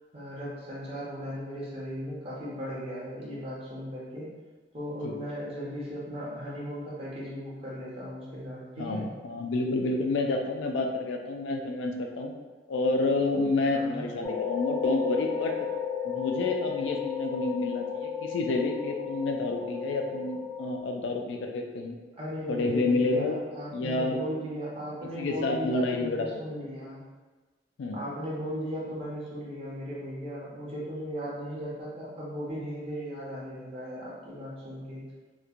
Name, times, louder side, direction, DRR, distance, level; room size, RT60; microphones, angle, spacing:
voice 1, 0.1-4.3 4.7-9.0 13.7-14.1 22.1-27.0 27.9-35.1, equal, 35° right, -7 dB, 0.8 m, -37 dB
voice 2, 8.8-12.3 12.7-15.7 16.0-22.0 22.5-23.4 23.7-24.2 25.0-26.4 27.8-28.0, left 2 dB, 90° left, 3 dB, 0.3 m, -29 dB
sound 1, 14.2-20.8, left 7 dB, 15° left, 0.3 m, -33 dB
3.0 x 2.1 x 2.4 m, 1.3 s
head